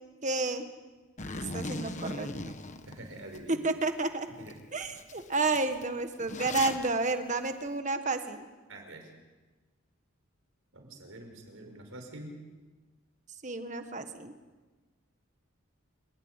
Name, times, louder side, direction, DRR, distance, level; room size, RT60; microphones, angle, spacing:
voice 1, 0.2-0.6 1.5-2.5 3.6-4.3 4.7-8.5 13.4-14.3, right 3 dB, 35° right, 8 dB, 1.6 m, -31 dB
Zipper (clothing), 1.2-3.4 3.9-4.0 4.5-4.6 4.8-6.9, left 2 dB, 35° left, 1.3 m, -38 dB
voice 2, 2.9-3.6 4.4-4.6 8.7-9.1 10.7-12.3, right 1 dB, 70° right, 3 dB, 5.6 m, -46 dB
28.5 x 13.5 x 9.8 m, 1.3 s
head